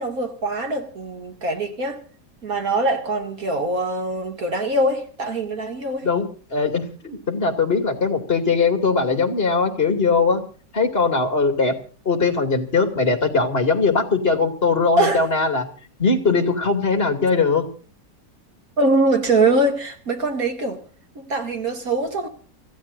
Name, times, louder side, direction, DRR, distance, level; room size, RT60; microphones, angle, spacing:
voice 1, 0.0-2.0 2.4-6.1 15.0-15.2 18.8-20.8 21.2-22.3, right 2 dB, 50° right, 2.9 m, -22 dB
voice 2, 6.0-10.4 10.7-11.7 12.0-15.6 16.0-17.7, left 4 dB, 30° left, 2.8 m, -20 dB
28.0 x 15.0 x 2.7 m
omnidirectional pair, 1.9 m